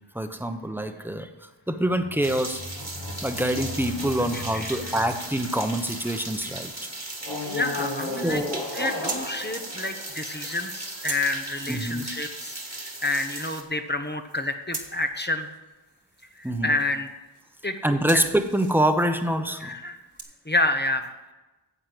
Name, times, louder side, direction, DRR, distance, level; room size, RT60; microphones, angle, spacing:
voice 1, 0.1-1.3 1.7-2.6 3.2-6.7 8.2-8.6 11.7-12.1 16.4-16.7 17.8-19.7, right 1 dB, 5° right, 7 dB, 1.0 m, -25 dB
sound 1, 1.8-6.4 7.2-10.8, left 2 dB, 65° left, 1.9 m, -36 dB
sound 2, 2.2-13.6, right 2 dB, 35° right, 1.7 m, -38 dB
voice 2, 4.3-4.8 7.5-8.4 8.7-15.5 16.4-17.1 17.6-17.8 18.1-18.2 19.6-20.0 20.4-21.1, left 2 dB, 25° left, 7 dB, 1.0 m, -29 dB
sound 3, 6.4-20.2, right 3 dB, 65° right, 1.7 m, -44 dB
9.8 x 7.6 x 7.7 m, 1.1 s
wide cardioid pair, 45°, 44 cm